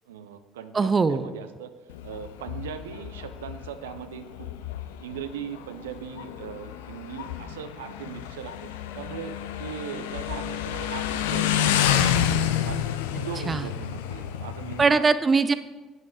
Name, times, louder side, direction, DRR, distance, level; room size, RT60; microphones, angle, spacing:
voice 1, 0.1-1.7 2.0-4.5 5.0-12.8 13.1-15.1, right 8 dB, 75° right, 10 dB, 0.6 m, -39 dB
voice 2, 0.7-1.3 13.5-13.6 14.8-15.5, right 4 dB, 30° right, 14 dB, 0.5 m, -21 dB
Motorcycle, 1.9-14.8, left 10 dB, 70° left, 0.5 m, -29 dB
11.0 x 9.5 x 3.7 m, 1.2 s
figure-of-eight pair, 55°, 0 cm